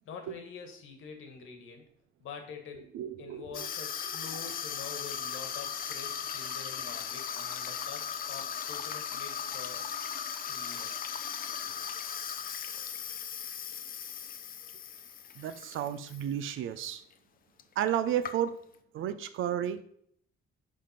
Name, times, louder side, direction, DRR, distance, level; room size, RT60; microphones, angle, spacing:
voice 1, 0.0-1.8 2.2-2.9 3.2-9.9 10.5-11.2, left 5 dB, 80° left, 5 dB, 1.9 m, -46 dB
voice 2, 2.9-3.4 15.4-17.0 17.8-18.5 18.9-19.8, right 10 dB, 80° right, 12 dB, 0.8 m, -32 dB
Water tap faucet / Sink (filling or washing), 3.5-16.2 16.6-16.9 17.6-17.7 17.9-18.8, left 8 dB, 45° left, 0.7 m, -38 dB
10.0 x 3.7 x 5.9 m, 0.67 s
cardioid pair, 145°, 20 cm